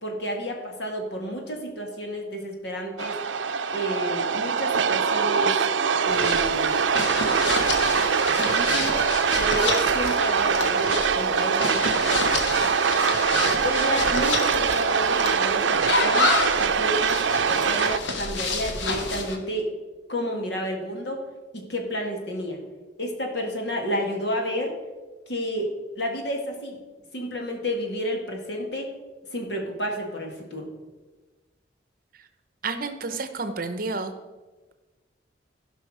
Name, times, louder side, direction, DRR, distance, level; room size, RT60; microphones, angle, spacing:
voice 1, 0.0-3.2 3.7-5.6 6.0-6.9 8.2-9.0 9.4-12.5 13.6-16.3 16.6-19.7 20.1-21.2 21.5-22.6 23.0-24.8 25.3-25.7 26.0-26.8 27.1-28.9 29.3-30.7, equal, 60° left, 2 dB, 2.0 m, -31 dB
sound 1, 3.0-18.0, right 6 dB, 80° right, 0.5 m, -23 dB
sound 2, 6.1-19.4, left 2 dB, 85° left, 1.3 m, -29 dB
voice 2, 32.6-34.1, right 3 dB, 50° right, 9 dB, 0.8 m, -30 dB
16.0 x 5.5 x 5.0 m, 1.2 s
head